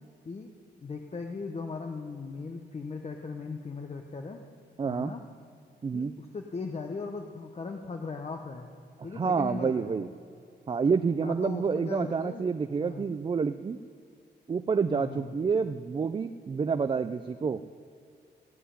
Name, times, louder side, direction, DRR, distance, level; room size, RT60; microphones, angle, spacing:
voice 1, 0.8-4.4 4.9-5.2 5.9-8.7 9.0-10.0 11.2-12.4 12.8-13.1 14.9-15.3, left 4 dB, 35° left, 3 dB, 0.8 m, -38 dB
voice 2, 4.8-5.1 5.8-6.1 9.1-10.1 10.7-13.8 14.5-17.6, right 5 dB, 30° right, 10 dB, 0.4 m, -28 dB
17.0 x 5.8 x 9.8 m, 2.4 s
wide cardioid pair, 115°, 18 cm